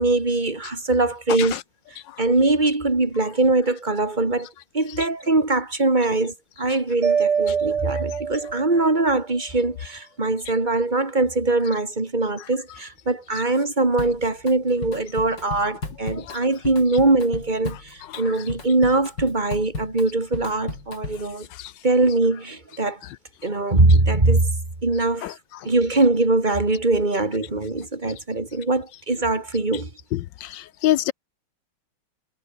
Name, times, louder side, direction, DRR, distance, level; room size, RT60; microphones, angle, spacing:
voice 1, 0.0-1.5 2.2-4.5 4.7-21.5 21.8-23.0 23.4-24.6 24.8-25.3 25.6-29.9, right 2 dB, 20° right, 3.2 m, -22 dB
Mallet percussion, 7.0-9.1, right 6 dB, 55° right, 2.4 m, -24 dB
Drum kit, 14.0-14.5 14.8-21.3, left 3 dB, 55° left, 5.5 m, -35 dB
voice 2, 30.4-31.1, left 14 dB, 75° left, 1.2 m, -23 dB
omnidirectional pair, 2.3 m